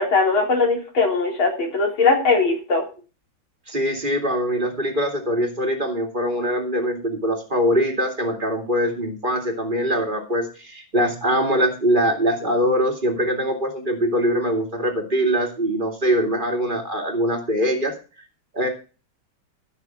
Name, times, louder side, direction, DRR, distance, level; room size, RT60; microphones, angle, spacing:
voice 1, 0.0-2.8, left 4 dB, 80° left, 0 dB, 4.6 m, -20 dB
voice 2, 3.7-17.9 18.5-18.7, equal, 25° right, 3 dB, 2.4 m, -22 dB
14.0 x 6.1 x 6.0 m, 0.34 s
omnidirectional pair, 2.2 m